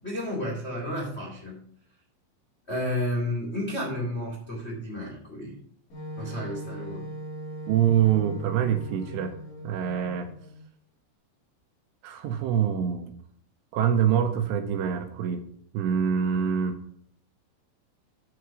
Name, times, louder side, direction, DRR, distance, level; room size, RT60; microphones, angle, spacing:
voice 1, 0.0-1.6 2.7-5.6 6.1-7.1, left 1 dB, 75° left, -3 dB, 0.6 m, -32 dB
Wind instrument woodwind instrument, 5.9-10.6, right 1 dB, 50° left, 3.9 m, -39 dB
voice 2, 7.7-9.3 9.6-10.3 12.0-13.1 13.7-15.4 15.7-16.8, right 9 dB, 80° right, 6 dB, 2.7 m, -25 dB
7.9 x 6.4 x 6.0 m, 0.62 s
omnidirectional pair, 5.6 m